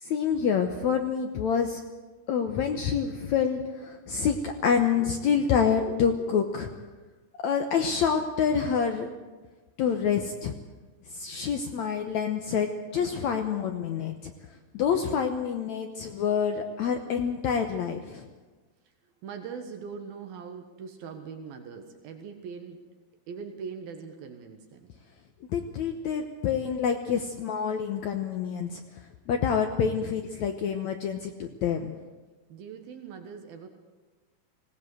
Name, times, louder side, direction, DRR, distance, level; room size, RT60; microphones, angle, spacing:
voice 1, 0.0-1.8 2.3-6.7 7.4-9.1 9.8-10.6 11.1-14.3 14.7-18.3 25.5-28.8 29.3-32.0, left 7 dB, 70° left, 5 dB, 1.8 m, -27 dB
voice 2, 18.8-22.9 23.3-24.9 32.5-33.7, right 6 dB, 75° right, 5 dB, 3.2 m, -41 dB
19.5 x 18.0 x 7.9 m, 1.3 s
omnidirectional pair, 4.4 m